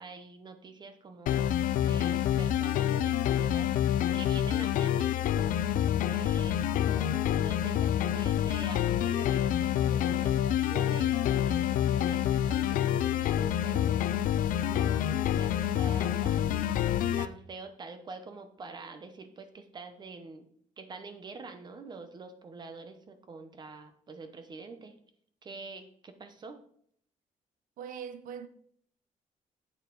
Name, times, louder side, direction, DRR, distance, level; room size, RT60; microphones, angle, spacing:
voice 1, 0.0-1.5 1.8-5.6 6.0-14.3 14.6-16.8 17.2-20.5 20.8-24.9 25.4-26.6, right 4 dB, 30° right, 0.8 m, -46 dB
sound 1, 1.3-17.3, left 10 dB, 85° left, 0.5 m, -27 dB
voice 2, 27.8-28.5, right 7 dB, 80° right, 0.8 m, -41 dB
8.3 x 7.0 x 3.9 m
cardioid pair, 160°, 14 cm